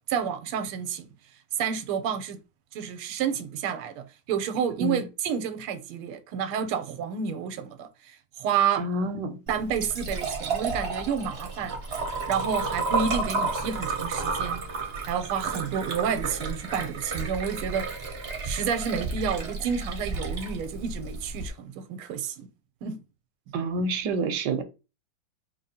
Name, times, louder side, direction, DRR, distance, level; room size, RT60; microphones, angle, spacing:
voice 1, 0.1-1.1 1.6-2.4 2.7-7.9 8.4-8.8 9.5-11.7 12.3-14.6 15.0-17.9 18.4-22.5 22.8-23.0, right 7 dB, 85° right, 1.5 m, -30 dB
voice 2, 8.8-9.4 23.5-24.6, right 2 dB, 70° right, 1.2 m, -28 dB
Liquid, 9.5-21.5, right 3 dB, 45° right, 0.8 m, -32 dB
4.9 x 3.0 x 2.7 m
omnidirectional pair, 2.4 m